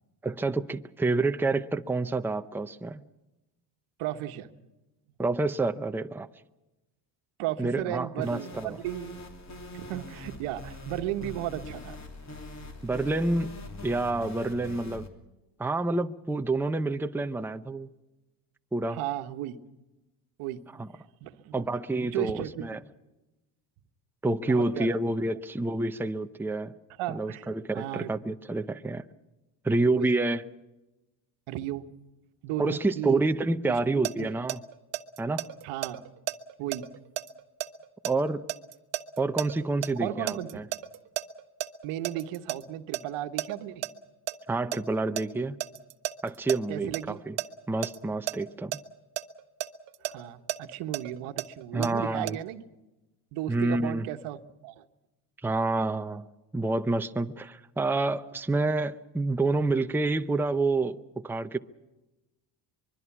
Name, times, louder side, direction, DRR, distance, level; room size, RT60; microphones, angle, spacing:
voice 1, 0.2-3.0 5.2-6.3 7.6-8.8 12.8-13.5 13.8-15.1 15.6-17.9 18.7-19.0 20.8-20.9 21.5-22.8 24.2-26.7 27.1-29.0 29.6-30.4 32.6-34.6 35.2-35.5 38.0-38.4 39.2-40.7 44.5-45.6 46.2-47.4 47.7-48.8 51.7-52.4 53.5-54.0 55.4-56.3 56.5-61.6, right 2 dB, 5° right, 0.7 m, -28 dB
voice 2, 4.0-4.5 7.4-9.2 9.8-12.0 18.9-19.6 20.4-20.6 21.2-21.7 22.0-22.8 24.4-25.0 27.0-27.4 27.7-28.1 29.9-30.2 31.5-31.8 32.4-33.2 33.7-33.8 34.2-34.3 35.6-36.0 36.6-36.9 40.0-40.6 41.8-43.8 46.7-47.2 50.0-52.6 53.3-54.8, right 13 dB, 75° right, 1.4 m, -34 dB
sound 1, 8.2-15.1, left 2 dB, 35° left, 3.1 m, -43 dB
sound 2, 34.0-39.9 40.3-42.6 42.9-43.0 43.4-43.9 44.3-47.5 47.8-48.0 48.3-48.4 48.7-48.8 49.2-51.9 52.3-52.4, right 14 dB, 55° right, 1.2 m, -33 dB
24.5 x 22.5 x 6.1 m
supercardioid pair, 90°, 50 cm